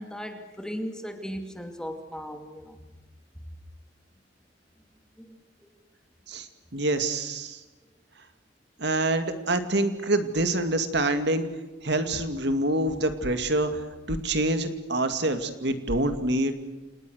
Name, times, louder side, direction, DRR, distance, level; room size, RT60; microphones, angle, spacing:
voice 1, 0.0-2.8 5.2-5.4 5.6-5.7, equal, 5° left, 5 dB, 2.6 m, -37 dB
voice 2, 6.3-7.6 8.8-11.5 11.8-16.5, right 2 dB, 65° right, 8 dB, 2.4 m, -26 dB
29.0 x 28.5 x 6.5 m, 1.1 s
head